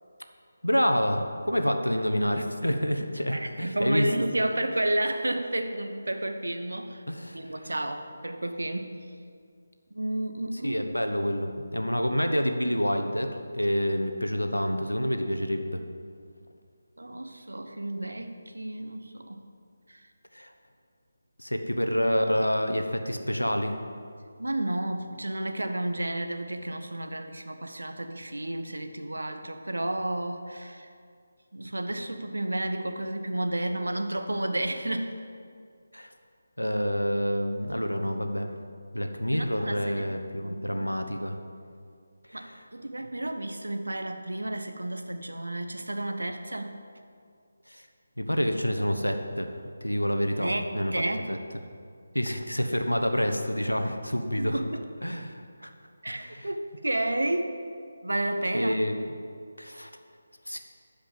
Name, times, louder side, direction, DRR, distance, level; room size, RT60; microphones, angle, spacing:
voice 1, 0.6-4.1 7.1-7.7 10.6-15.8 20.3-20.5 21.4-23.8 35.9-36.1 36.6-38.5 38.9-41.4 42.3-42.5 47.7-47.8 48.2-49.5 49.8-50.9 51.3-51.4 52.1-54.6 55.0-55.7 56.1-56.5 58.5-59.0 59.6-59.9 60.5-60.6, equal, 85° left, 5 dB, 1.0 m, -28 dB
voice 2, 3.3-7.0 7.3-9.0 9.9-10.8 17.0-19.4 19.9-20.0 21.6-21.7 24.4-30.9 31.5-35.2 39.3-40.1 40.4-40.9 42.3-46.8 50.4-51.3 54.4-54.9 56.0-57.6 58.0-58.8, right 1 dB, 70° right, 6 dB, 1.0 m, -31 dB
12.0 x 5.1 x 7.6 m, 2.2 s
figure-of-eight pair, 155°, 0 cm